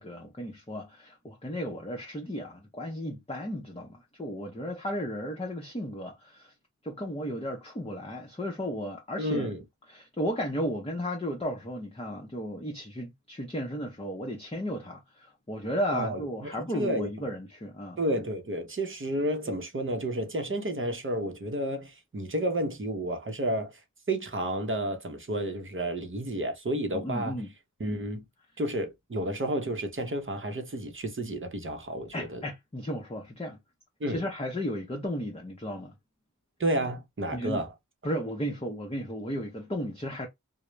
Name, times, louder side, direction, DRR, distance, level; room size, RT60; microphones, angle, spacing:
voice 1, 0.0-6.5 6.8-9.5 9.9-18.0 26.9-27.5 32.1-33.6 34.1-35.9 37.3-37.6 38.0-40.3, equal, 20° left, 0.7 m, -34 dB
voice 2, 9.2-9.6 15.9-17.1 18.0-23.7 24.1-27.4 27.8-28.2 28.6-32.4 34.0-34.2 36.6-37.7, right 1 dB, 40° right, 0.7 m, -31 dB
2.3 x 2.0 x 3.0 m
wide cardioid pair, 45°, 33 cm